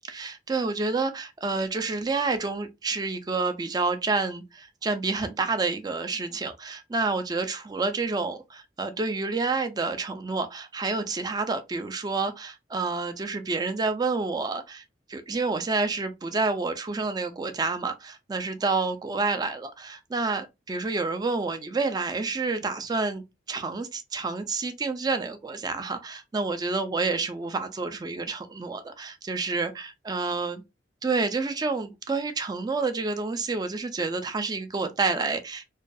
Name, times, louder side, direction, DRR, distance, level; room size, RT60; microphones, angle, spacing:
voice 1, 0.1-14.8 15.1-30.6 31.0-35.7, right 3 dB, 20° right, 0.3 m, -29 dB
2.3 x 2.3 x 2.5 m
head